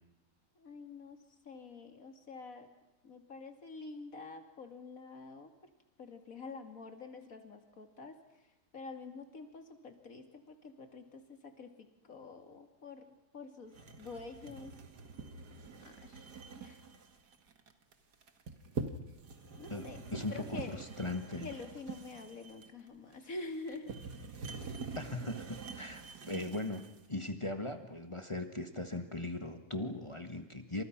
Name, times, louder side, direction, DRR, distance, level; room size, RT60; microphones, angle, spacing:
voice 1, 0.6-2.7 3.0-5.5 6.0-8.2 8.7-14.7 15.8-16.3 16.6-16.8 18.8-18.9 19.6-20.8 21.4-23.9, left 3 dB, 55° left, 6 dB, 2.8 m, -47 dB
sound 1, 13.7-27.1, right 4 dB, 80° right, 2.4 m, -45 dB
voice 2, 19.7-21.5 24.9-30.8, left 2 dB, 20° left, 6 dB, 1.6 m, -39 dB
28.5 x 27.0 x 6.0 m, 1.0 s
omnidirectional pair, 1.7 m